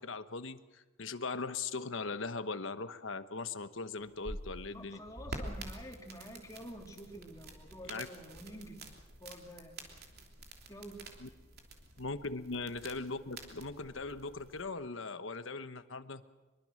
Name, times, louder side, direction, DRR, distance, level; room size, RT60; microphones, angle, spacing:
voice 1, 0.0-5.0 7.9-8.1 11.2-11.3 12.0-16.2, left 4 dB, 65° left, 11 dB, 1.2 m, -40 dB
sound 1, 4.0-14.6, right 2 dB, 50° right, 3.2 m, -48 dB
voice 2, 4.7-9.8 10.7-11.0, equal, 15° left, 1 dB, 3.1 m, -49 dB
24.5 x 23.0 x 6.6 m, 1.2 s
head